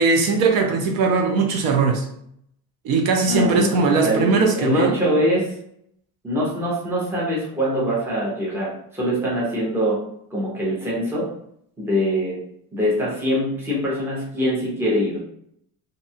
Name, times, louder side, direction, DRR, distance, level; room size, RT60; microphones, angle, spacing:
voice 1, 0.0-2.1 2.8-5.0, right 4 dB, 65° right, 3 dB, 0.6 m, -19 dB
voice 2, 3.2-5.5 6.2-10.0 10.3-11.3 11.8-12.4 12.7-15.2, equal, 5° right, -6 dB, 0.5 m, -23 dB
2.6 x 2.2 x 2.7 m, 0.70 s
cardioid pair, 175°, 38 cm